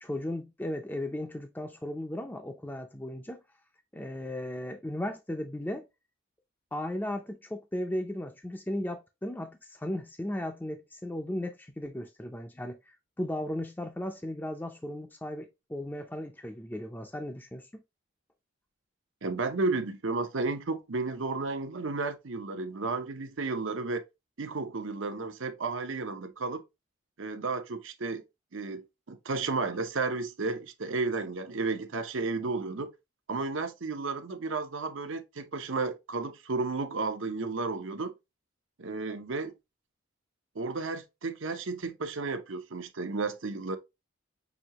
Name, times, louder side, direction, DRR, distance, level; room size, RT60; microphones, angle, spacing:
voice 1, 0.0-3.4 3.9-5.8 6.7-12.8 13.2-17.7, left 1 dB, 10° left, 0.5 m, -36 dB
voice 2, 19.2-24.0 24.4-26.6 27.2-28.2 28.5-32.9 33.3-38.1 38.8-39.5 40.5-43.8, right 3 dB, 70° right, 0.8 m, -33 dB
6.1 x 2.8 x 2.9 m
head